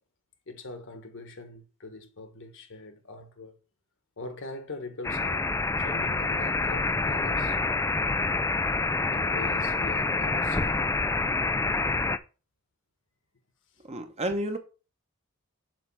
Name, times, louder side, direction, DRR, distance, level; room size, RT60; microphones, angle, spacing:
voice 1, 0.5-3.5 4.2-5.5 5.8-7.6 9.1-10.9, left 2 dB, 60° left, 1.3 m, -42 dB
sound 1, 5.0-12.2, left 3 dB, 15° left, 0.3 m, -27 dB
voice 2, 13.8-14.6, right 1 dB, 30° right, 1.0 m, -31 dB
7.4 x 3.4 x 6.1 m
head